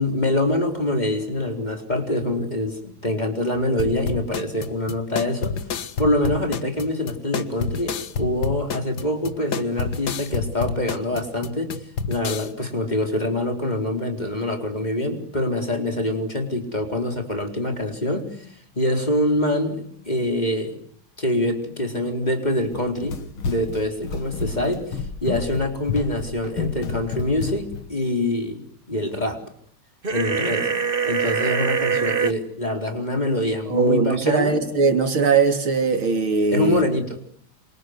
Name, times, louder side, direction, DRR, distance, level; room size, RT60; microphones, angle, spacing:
voice 1, 0.0-5.6 6.0-11.8 12.1-18.5 18.8-20.7 21.2-23.2 23.4-28.6 28.9-29.4 30.1-30.7 31.0-34.6 36.5-37.2, left 1 dB, 20° left, 4 dB, 4.3 m, -25 dB
sound 1, 3.8-12.5, left 5 dB, 55° left, 1.9 m, -29 dB
Run, 22.6-27.9, left 5 dB, 80° left, 3.1 m, -31 dB
sound 2, 30.0-32.3, right 6 dB, 30° right, 1.3 m, -23 dB
voice 2, 33.7-36.8, right 4 dB, 75° right, 6 dB, 4.0 m, -20 dB
27.5 x 26.0 x 8.1 m, 0.66 s
omnidirectional pair, 2.3 m